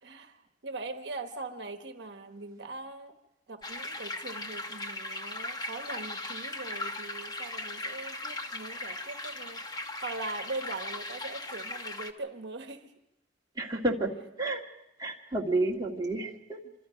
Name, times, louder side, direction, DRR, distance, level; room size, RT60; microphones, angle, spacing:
voice 1, 0.0-3.2 3.5-12.9 16.6-16.7, right 3 dB, 65° right, 7 dB, 1.2 m, -41 dB
sound 1, 3.6-12.1, left 2 dB, 20° left, 1.0 m, -38 dB
voice 2, 13.6-14.1 14.4-14.6 15.0-16.6, right 2 dB, 20° right, -2 dB, 1.9 m, -30 dB
26.5 x 25.0 x 5.1 m, 0.88 s
head